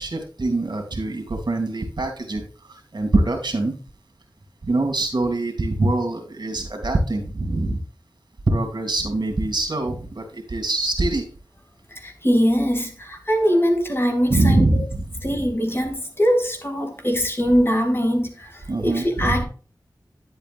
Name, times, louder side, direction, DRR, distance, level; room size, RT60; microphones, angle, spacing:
voice 1, 0.0-3.7 4.6-7.8 8.5-11.3 14.3-15.3 18.7-19.4, right 2 dB, 65° right, 2.3 m, -23 dB
voice 2, 11.9-14.7 15.2-19.4, equal, 30° left, 2.4 m, -22 dB
10.0 x 8.0 x 2.5 m
wide cardioid pair, 50°, 8 cm